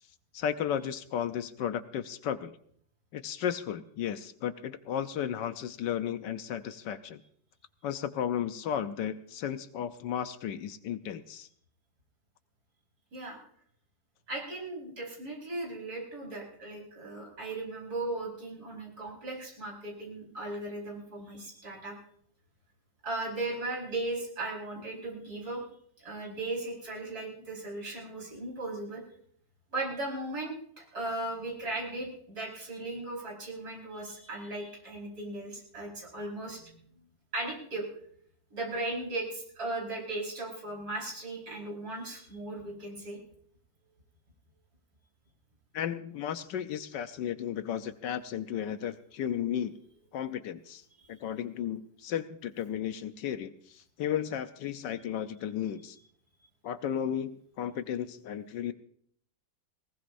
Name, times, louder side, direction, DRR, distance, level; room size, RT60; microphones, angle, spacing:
voice 1, 0.3-2.5 3.1-7.2 7.8-11.5 45.7-49.8 50.1-50.8 51.1-56.0 56.6-58.7, left 9 dB, 75° left, 11 dB, 1.4 m, -34 dB
voice 2, 14.3-21.9 23.0-25.6 26.0-29.0 29.7-36.9 37.3-37.9 38.5-43.2 51.0-51.1, right 2 dB, 50° right, -2 dB, 5.3 m, -37 dB
20.0 x 19.0 x 2.6 m, 0.62 s
omnidirectional pair, 2.0 m